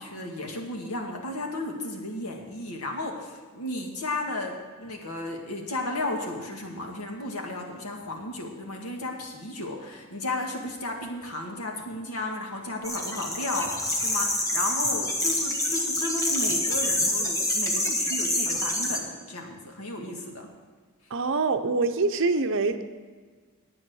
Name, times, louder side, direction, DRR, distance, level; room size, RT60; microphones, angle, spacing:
voice 1, 0.0-20.5, left 2 dB, 90° left, 2 dB, 1.9 m, -34 dB
sound 1, 12.8-19.0, left 1 dB, 15° left, 1.3 m, -27 dB
voice 2, 21.1-22.8, right 3 dB, 60° right, 9 dB, 0.7 m, -25 dB
10.5 x 8.7 x 6.3 m, 1.5 s
head